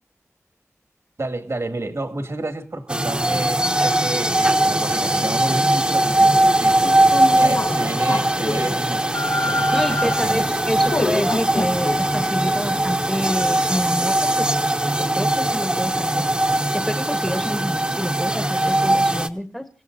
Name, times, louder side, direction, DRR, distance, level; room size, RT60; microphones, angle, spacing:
voice 1, 1.2-6.8 7.4-9.1 9.4-10.5 17.3-17.4, right 2 dB, 65° right, 2.3 m, -30 dB
sound 1, 2.9-19.3, right 1 dB, 20° right, 1.1 m, -20 dB
sound 2, 4.6-13.0, left 2 dB, 55° left, 0.9 m, -29 dB
voice 2, 9.5-14.6 15.0-16.3 16.7-19.7, equal, 5° left, 1.2 m, -28 dB
28.5 x 16.5 x 2.7 m
wide cardioid pair, 75°, 5 cm